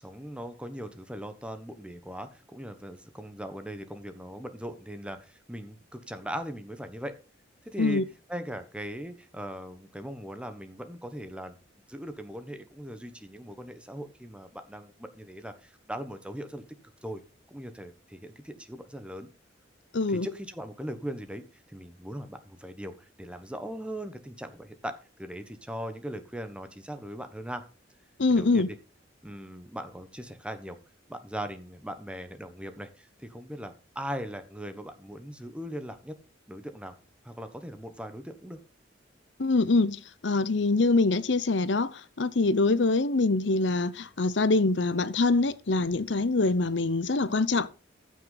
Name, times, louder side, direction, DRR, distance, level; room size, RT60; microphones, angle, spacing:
voice 1, 0.0-7.1 7.6-8.0 8.3-11.6 11.9-16.6 17.0-17.2 17.5-19.3 20.1-27.6 28.3-28.8 29.2-30.8 31.1-36.2 36.5-36.9 37.2-38.6, equal, 5° right, 1.1 m, -39 dB
voice 2, 19.9-20.3 28.2-28.7 39.4-47.7, left 3 dB, 70° left, 0.8 m, -24 dB
14.5 x 6.3 x 4.0 m
head